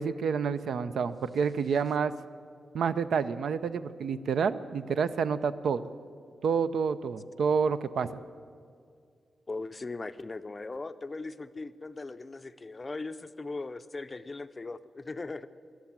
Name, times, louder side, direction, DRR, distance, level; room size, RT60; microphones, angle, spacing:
voice 1, 0.0-2.1 2.7-5.8 6.4-8.1, right 6 dB, 85° right, 13 dB, 0.5 m, -28 dB
voice 2, 9.5-15.5, left 3 dB, 25° left, 12 dB, 0.4 m, -39 dB
14.0 x 11.5 x 8.8 m, 2.2 s
wide cardioid pair, 160°, 0 cm